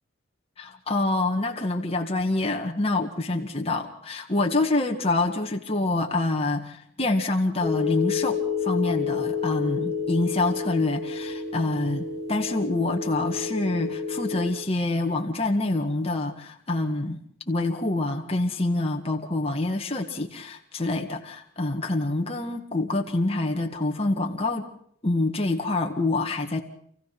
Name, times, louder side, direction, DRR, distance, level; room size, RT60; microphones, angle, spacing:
voice 1, 0.6-17.2 17.5-24.7 25.0-26.6, left 2 dB, 30° left, 2 dB, 1.8 m, -26 dB
sound 1, 7.6-14.5, left 5 dB, 75° right, 4.2 m, -30 dB
28.5 x 15.5 x 6.1 m, 0.65 s
head